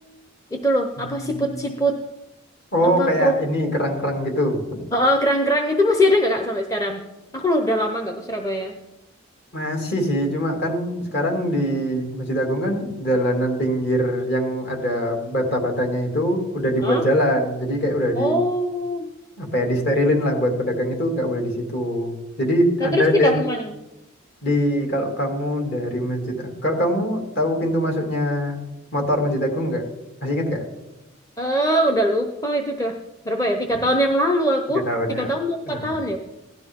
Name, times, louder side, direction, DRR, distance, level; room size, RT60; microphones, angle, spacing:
voice 1, 0.5-2.0 2.8-3.3 4.9-7.0 7.3-8.7 16.8-17.0 18.2-19.1 22.8-23.7 31.4-32.9 33.2-36.2, equal, 15° left, 3 dB, 0.8 m, -22 dB
voice 2, 1.0-1.6 2.7-4.8 9.5-18.4 19.4-23.3 24.4-28.7 28.9-29.9 30.2-30.6 34.7-35.3 35.7-36.0, equal, 50° left, 1 dB, 2.7 m, -23 dB
16.5 x 12.0 x 3.7 m, 0.97 s
head